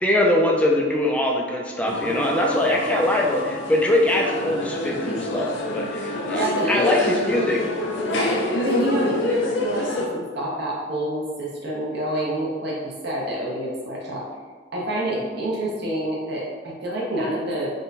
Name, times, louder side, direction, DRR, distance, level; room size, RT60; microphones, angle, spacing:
voice 1, 0.0-7.6 15.1-15.2, left 1 dB, 5° left, -1 dB, 0.4 m, -22 dB
sound 1, 1.9-10.1, left 2 dB, 70° left, 0.5 m, -27 dB
voice 2, 6.4-6.9 8.1-14.3 14.7-17.7, right 1 dB, 60° right, -4 dB, 0.8 m, -27 dB
3.7 x 2.2 x 4.0 m, 1.5 s
head